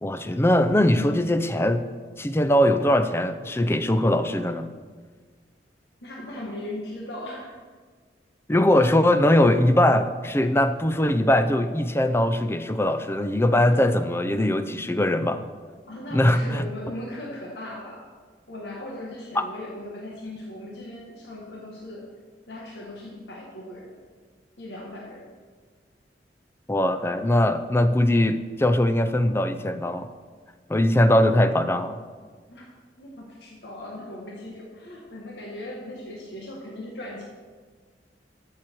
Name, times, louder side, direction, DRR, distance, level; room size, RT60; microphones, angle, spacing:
voice 1, 0.0-1.9 2.2-4.7 8.5-15.4 16.1-16.7 19.4-19.5 26.7-30.1 30.7-32.0, left 1 dB, 15° left, 10 dB, 0.5 m, -21 dB
voice 2, 6.0-7.6 15.9-18.0 18.5-22.1 22.5-24.0 24.6-25.3 32.5-32.7 33.0-37.2, left 1 dB, 75° left, -2 dB, 1.6 m, -38 dB
13.0 x 7.6 x 4.6 m, 1.5 s
head